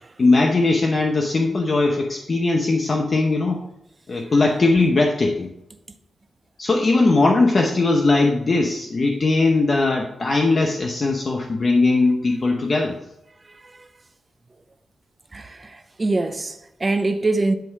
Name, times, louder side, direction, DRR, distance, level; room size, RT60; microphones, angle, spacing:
voice 1, 0.2-3.6 4.1-5.5 6.6-12.9, left 3 dB, 40° left, 0.8 m, -19 dB
voice 2, 13.5-13.9 15.3-17.5, right 2 dB, 30° right, 0.7 m, -24 dB
10.5 x 3.7 x 4.7 m
cardioid pair, 90°, 0 cm